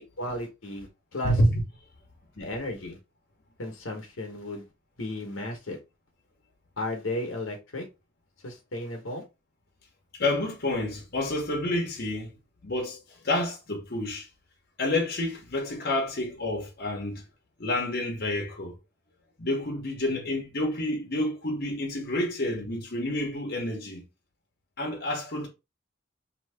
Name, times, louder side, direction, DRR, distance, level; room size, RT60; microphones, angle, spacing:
voice 1, 0.2-1.3 2.3-3.0 3.6-4.7 5.0-5.8 6.8-7.9 8.4-9.2, left 1 dB, 80° left, 1.0 m, -34 dB
voice 2, 10.1-12.4 12.6-14.3 14.8-17.2 17.6-18.7 19.4-24.0 24.8-25.5, left 1 dB, 50° left, 1.0 m, -29 dB
2.9 x 2.7 x 3.2 m
head